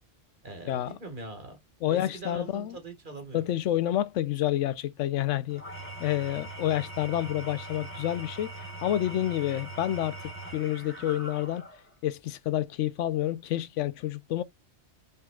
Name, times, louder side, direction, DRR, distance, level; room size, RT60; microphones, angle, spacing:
voice 1, 0.4-1.6 1.9-3.4, right 3 dB, 45° right, 1.7 m, -42 dB
voice 2, 1.8-2.8 3.3-5.6 6.0-8.5 8.8-10.2 10.5-11.7 12.0-14.4, left 13 dB, 85° left, 0.9 m, -28 dB
Engine / Tools, 5.5-11.9, right 2 dB, 10° left, 1.8 m, -41 dB
5.5 x 3.6 x 2.2 m
omnidirectional pair, 1.2 m